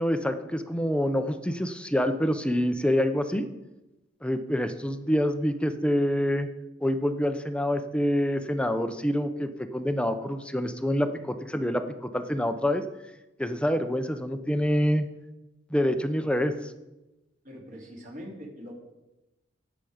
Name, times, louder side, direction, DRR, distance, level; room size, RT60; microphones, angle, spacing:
voice 1, 0.0-3.5 4.2-6.5 6.8-12.8 13.4-15.1 15.7-16.7, equal, 5° left, 8 dB, 0.7 m, -26 dB
voice 2, 17.4-18.7, equal, 45° right, -1 dB, 3.4 m, -42 dB
18.5 x 7.3 x 5.1 m, 1.0 s
head